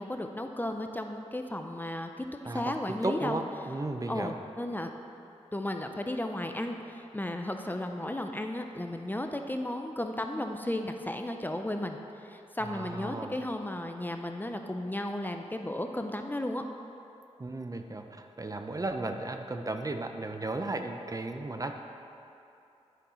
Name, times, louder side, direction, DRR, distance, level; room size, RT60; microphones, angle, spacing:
voice 1, 0.0-3.4 4.1-4.9 5.5-16.6, left 1 dB, 15° left, 5 dB, 0.5 m, -34 dB
voice 2, 3.0-4.3 12.7-13.3 17.4-21.7, right 2 dB, 30° right, 5 dB, 0.6 m, -35 dB
9.2 x 5.3 x 4.3 m, 2.7 s
cardioid pair, 50°, 12 cm